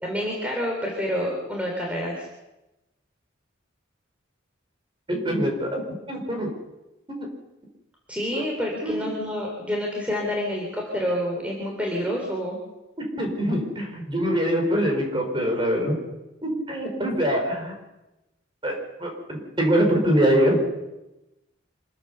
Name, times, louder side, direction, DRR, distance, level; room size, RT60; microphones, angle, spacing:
voice 1, 0.0-2.3 8.1-12.6, equal, 5° right, -1 dB, 3.7 m, -28 dB
voice 2, 5.1-5.8 6.1-6.5 7.1-7.3 8.3-8.4 8.8-9.1 13.2-16.0 16.4-17.8 18.6-20.6, equal, 25° right, 2 dB, 5.3 m, -24 dB
26.5 x 14.5 x 6.9 m, 0.98 s
head